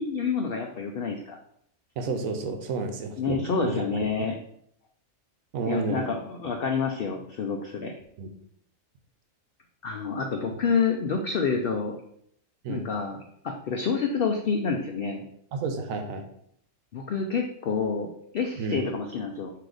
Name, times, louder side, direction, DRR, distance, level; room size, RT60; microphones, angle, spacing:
voice 1, 0.0-1.4 3.2-4.3 5.7-7.9 9.8-11.9 12.7-15.2 16.9-19.5, left 5 dB, 75° left, 3 dB, 0.5 m, -28 dB
voice 2, 2.0-3.8 4.2-4.3 5.5-6.1 8.2-8.3 10.5-10.6 12.6-12.8 15.6-16.2 18.6-18.8, right 4 dB, 70° right, 6 dB, 1.0 m, -30 dB
4.7 x 2.9 x 3.8 m, 0.69 s
omnidirectional pair, 1.5 m